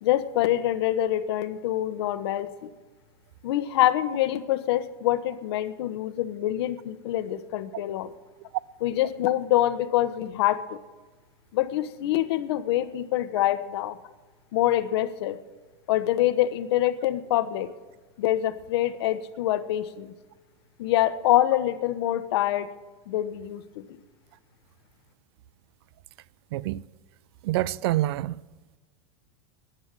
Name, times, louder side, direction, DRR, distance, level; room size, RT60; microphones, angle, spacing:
voice 1, 0.0-2.7 3.4-8.1 8.8-10.8 11.5-14.0 14.5-15.4 15.9-17.7 18.2-20.1 20.8-22.7 23.1-23.8, left 13 dB, 75° left, 1.1 m, -25 dB
voice 2, 26.5-26.8 27.4-28.4, right 15 dB, 70° right, 0.5 m, -26 dB
14.0 x 10.0 x 9.0 m
supercardioid pair, 160°, 14 cm